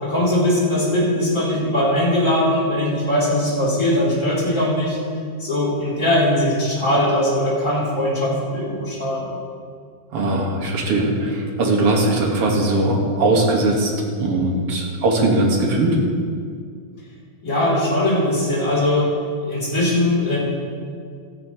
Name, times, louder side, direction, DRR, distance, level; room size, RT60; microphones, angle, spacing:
voice 1, 0.0-5.0 5.4-9.3 17.4-19.1 19.4-20.4, left 1 dB, 25° left, -6 dB, 3.6 m, -20 dB
voice 2, 10.1-13.9 14.2-16.0, right 2 dB, 55° right, 0 dB, 2.4 m, -19 dB
15.5 x 14.0 x 3.1 m, 2.2 s
omnidirectional pair, 3.5 m